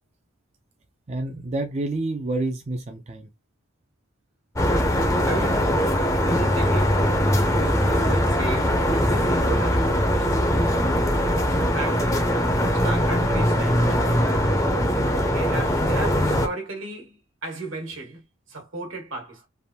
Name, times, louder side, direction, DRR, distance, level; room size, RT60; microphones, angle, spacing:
voice 1, 1.1-3.3, right 2 dB, 30° right, 0.4 m, -28 dB
sound 1, 4.6-16.5, equal, 15° left, 0.6 m, -21 dB
voice 2, 4.7-5.8 6.2-7.0 7.5-10.5 10.8-12.2 12.7-19.5, right 2 dB, 75° right, 1.4 m, -35 dB
3.4 x 2.5 x 2.7 m
head